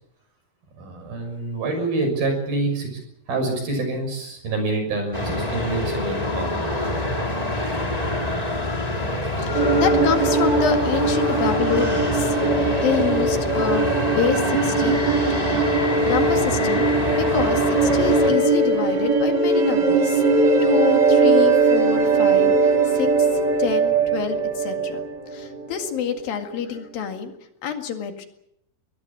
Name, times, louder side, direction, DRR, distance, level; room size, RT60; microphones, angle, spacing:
voice 1, 0.8-2.9 3.3-6.6, right 2 dB, 75° right, 5 dB, 8.2 m, -26 dB
sound 1, 5.1-18.3, left 1 dB, 10° left, 2.5 m, -26 dB
voice 2, 9.4-13.8 14.1-15.0 16.1-16.9 17.2-20.2 20.6-23.3 23.6-25.0 25.3-27.3 27.6-28.3, left 7 dB, 70° left, 6 dB, 3.8 m, -27 dB
sound 2, 9.5-26.0, right 3 dB, 30° right, 2.5 m, -20 dB
22.5 x 18.5 x 8.7 m, 0.77 s
omnidirectional pair, 4.3 m